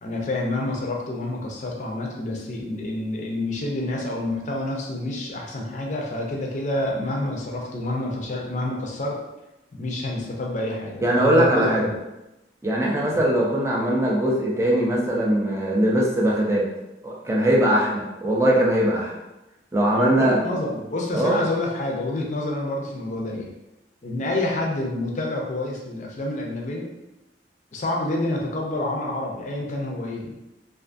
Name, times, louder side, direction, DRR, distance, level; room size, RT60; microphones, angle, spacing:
voice 1, 0.0-9.2 9.7-11.9 13.1-13.2 19.9-23.5 24.0-26.9 27.7-30.3, left 1 dB, 40° left, -1 dB, 0.4 m, -28 dB
voice 2, 11.0-11.9 12.6-16.7 17.0-19.1 19.7-20.4 21.1-21.5, right 1 dB, 15° right, -3 dB, 0.4 m, -21 dB
2.4 x 2.4 x 2.5 m, 0.96 s
head